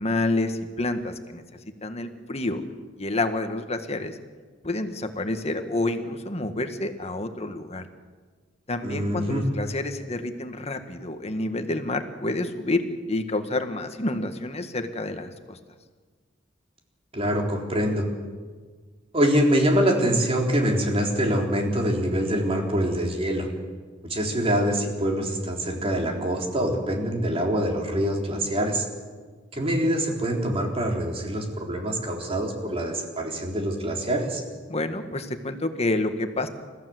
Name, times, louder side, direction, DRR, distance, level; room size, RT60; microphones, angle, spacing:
voice 1, 0.0-1.4 1.8-2.6 3.0-4.2 4.6-7.9 8.7-15.6 34.7-36.5, left 2 dB, 35° left, 7 dB, 1.7 m, -28 dB
voice 2, 8.8-9.4 17.1-18.1 19.1-23.5 24.0-28.9 29.5-34.4, equal, 30° right, 1 dB, 3.7 m, -25 dB
29.5 x 15.0 x 7.9 m, 1.5 s
head